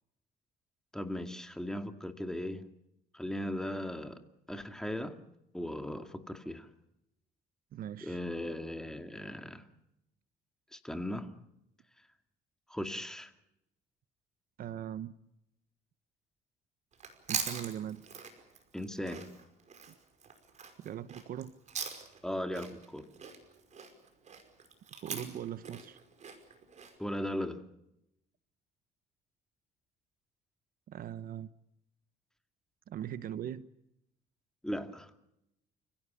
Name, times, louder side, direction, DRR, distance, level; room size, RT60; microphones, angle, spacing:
voice 1, 0.9-2.6 3.1-4.2 4.5-5.2 5.5-6.7 8.0-9.6 10.7-11.3 12.7-13.3 18.7-19.3 22.2-23.1 27.0-27.6 34.6-35.1, left 1 dB, 5° left, 2.3 m, -37 dB
voice 2, 7.7-8.2 14.6-15.1 17.3-18.1 19.9-20.0 20.8-21.5 25.0-26.0 30.9-31.5 32.9-33.7, right 10 dB, 60° right, 1.0 m, -40 dB
Chewing mastication, 16.9-22.3 22.5-26.9, right 6 dB, 45° right, 5.2 m, -42 dB
30.0 x 16.5 x 8.5 m
cardioid pair, 110°, 17 cm